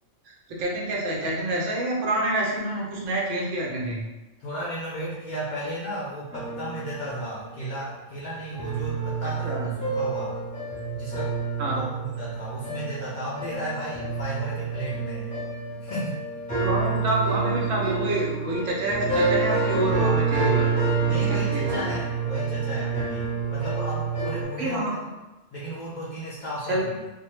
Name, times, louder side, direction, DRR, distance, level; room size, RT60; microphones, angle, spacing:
voice 1, 0.2-4.1 9.2-9.7 11.6-11.8 16.6-20.8 21.1-22.0 24.6-24.9 26.6-27.0, right 1 dB, 70° right, -3 dB, 0.9 m, -28 dB
voice 2, 4.4-10.4 10.9-11.4 11.6-15.3 15.8-16.2 21.1-25.0 25.5-26.9, right 1 dB, 85° left, -6 dB, 0.4 m, -34 dB
sound 1, 6.3-7.6 8.2-8.3 8.6-24.4, right 4 dB, 5° left, 0.9 m, -28 dB
2.1 x 2.1 x 3.0 m, 1.1 s
omnidirectional pair, 1.3 m